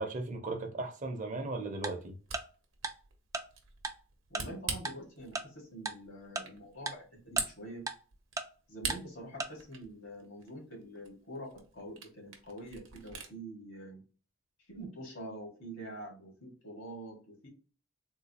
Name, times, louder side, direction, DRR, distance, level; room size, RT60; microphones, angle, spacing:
voice 1, 0.0-2.2, right 2 dB, 40° right, 0.7 m, -36 dB
Tick-tock, 1.8-1.9 2.3-2.4 2.8-2.9 3.3-3.4 3.8-3.9 4.3-4.4 4.8-4.9 5.3-5.4 5.8-5.9 6.3-6.4 6.9-7.0 7.4-7.5 7.9-8.0 8.4-8.5 8.9-9.0 9.4-9.5, right 3 dB, 15° right, 0.3 m, -35 dB
Camera, 2.0-13.3, right 6 dB, 80° right, 0.8 m, -44 dB
voice 2, 4.3-7.8 8.7-14.0 14.7-17.5, right 1 dB, 80° left, 1.8 m, -46 dB
3.7 x 2.3 x 2.9 m
head